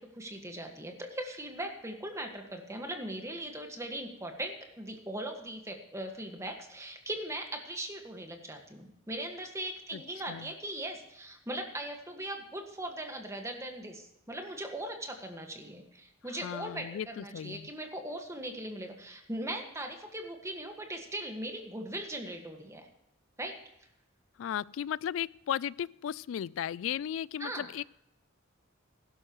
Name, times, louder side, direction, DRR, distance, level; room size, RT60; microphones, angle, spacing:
voice 1, 0.0-22.9 23.4-23.6 27.4-27.7, right 1 dB, 15° right, 3 dB, 1.7 m, -39 dB
voice 2, 16.4-17.7 24.4-27.8, left 9 dB, 75° left, 23 dB, 0.3 m, -35 dB
15.5 x 12.0 x 3.1 m, 0.82 s
head